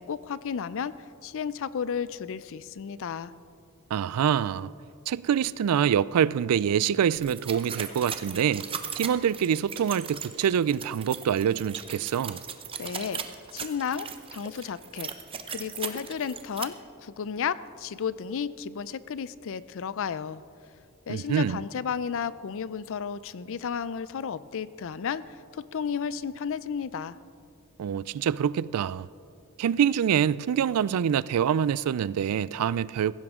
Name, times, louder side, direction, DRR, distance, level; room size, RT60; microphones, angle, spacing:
voice 1, 0.0-3.3 12.8-13.2 13.5-15.1 15.5-20.4 21.1-27.2, left 7 dB, 60° left, 0.4 m, -33 dB
voice 2, 3.9-4.7 5.1-8.6 8.9-12.4 21.1-21.6 27.8-29.1 29.6-33.1, right 8 dB, 85° right, 0.3 m, -25 dB
sound 1, 7.2-16.6, right 7 dB, 25° right, 0.7 m, -38 dB
16.0 x 15.5 x 3.7 m
head